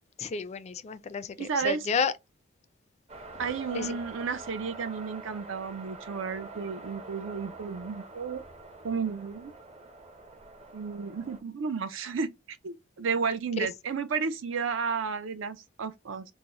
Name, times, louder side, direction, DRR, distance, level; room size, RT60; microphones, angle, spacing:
voice 1, 0.2-2.1 3.7-4.0 13.6-13.7, left 5 dB, 35° left, 0.3 m, -31 dB
voice 2, 1.4-1.8 3.4-8.4 8.8-9.5 10.7-16.3, right 5 dB, 70° right, 0.5 m, -32 dB
sound 1, 3.1-11.4, right 3 dB, 30° right, 0.7 m, -45 dB
3.9 x 2.0 x 2.9 m
head